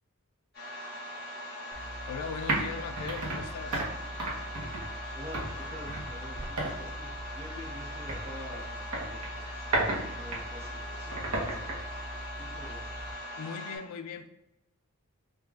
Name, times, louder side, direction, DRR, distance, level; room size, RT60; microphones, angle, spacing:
sound 1, 0.5-13.8, equal, 45° left, 1.4 m, -41 dB
sound 2, 1.7-13.1, right 1 dB, 80° right, 0.9 m, -36 dB
voice 1, 2.1-3.9 13.4-14.3, left 6 dB, 80° left, 8 dB, 0.3 m, -39 dB
voice 2, 5.1-9.7 10.0-11.2 11.4-11.8 12.4-12.9, left 1 dB, 30° right, -4 dB, 1.0 m, -47 dB
5.0 x 2.4 x 2.4 m, 0.92 s
head